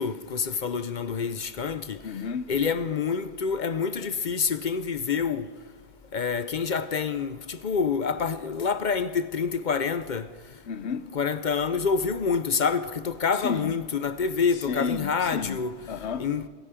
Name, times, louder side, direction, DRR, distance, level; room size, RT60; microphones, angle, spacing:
voice 1, 0.0-2.0 2.5-5.5 6.1-10.3 11.1-15.7 16.2-16.5, left 5 dB, 50° left, 0.7 m, -27 dB
voice 2, 2.0-2.5 10.7-11.1 13.4-13.7 14.7-15.6 15.9-16.3, left 6 dB, 70° left, 1.0 m, -31 dB
26.0 x 10.0 x 5.1 m
omnidirectional pair, 1.2 m